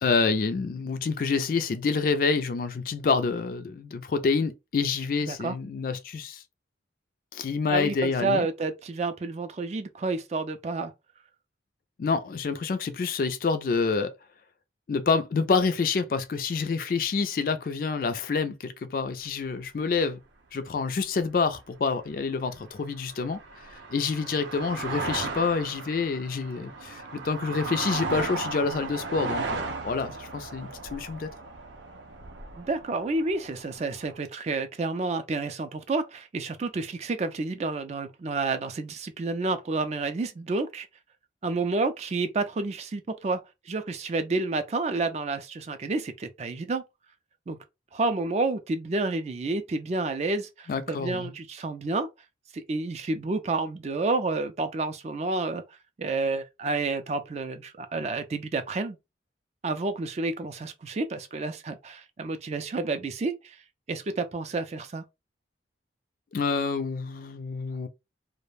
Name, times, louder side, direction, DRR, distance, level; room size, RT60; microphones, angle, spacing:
voice 1, 0.0-6.4 7.3-8.5 12.0-14.1 14.9-20.2 20.5-31.3 50.7-51.3 66.3-67.9, left 4 dB, 50° left, 0.3 m, -27 dB
voice 2, 5.2-5.6 7.7-10.9 32.6-40.9 41.4-43.4 43.7-46.8 47.5-47.6 47.9-52.1 52.5-55.6 56.0-59.0 59.6-63.6 63.9-65.0, right 3 dB, 35° right, 0.3 m, -30 dB
busy road car passing, 22.5-34.2, right 3 dB, 85° right, 0.5 m, -36 dB
2.3 x 2.1 x 3.1 m
head